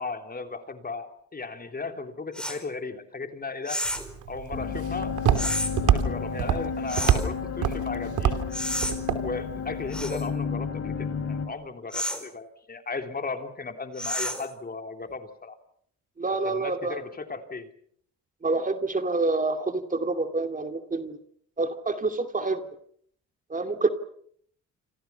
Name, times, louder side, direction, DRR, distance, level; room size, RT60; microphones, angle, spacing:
voice 1, 0.0-3.8 4.3-5.1 5.9-8.3 9.2-15.6 16.4-17.7, left 4 dB, 30° left, 6 dB, 3.3 m, -36 dB
sound 1, 2.4-2.6 3.7-4.1 5.4-5.7 6.9-7.3 8.5-9.0 9.9-10.3 11.9-12.3 14.0-14.5, equal, 5° left, 4.6 m, -30 dB
Walk footsteps, 3.8-10.0, right 9 dB, 80° right, 3.0 m, -27 dB
sound 2, 4.5-11.5, left 6 dB, 45° left, 7.2 m, -32 dB
voice 2, 16.2-17.0 18.4-21.2 21.6-22.6 23.5-23.9, right 3 dB, 25° right, 7 dB, 2.6 m, -27 dB
27.5 x 27.0 x 5.8 m, 0.63 s
cardioid pair, 90°, 30 cm